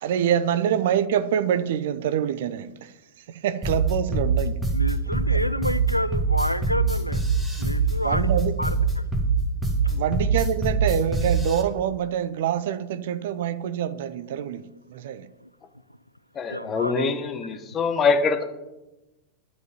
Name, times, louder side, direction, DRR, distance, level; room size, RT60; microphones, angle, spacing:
voice 1, 0.0-2.9 3.4-4.6 5.3-5.4 8.0-8.5 9.9-14.6 14.9-15.3, right 9 dB, 55° right, 0.6 m, -25 dB
sound 1, 3.6-11.6, right 4 dB, 10° right, 2.1 m, -23 dB
voice 2, 4.7-7.2 7.6-8.3 8.6-9.0 9.8-9.9 16.5-17.1, equal, 90° left, 0.4 m, -29 dB
voice 3, 16.3-18.4, left 5 dB, 25° left, 1.2 m, -24 dB
10.5 x 5.2 x 8.5 m
figure-of-eight pair, 90°, 0 cm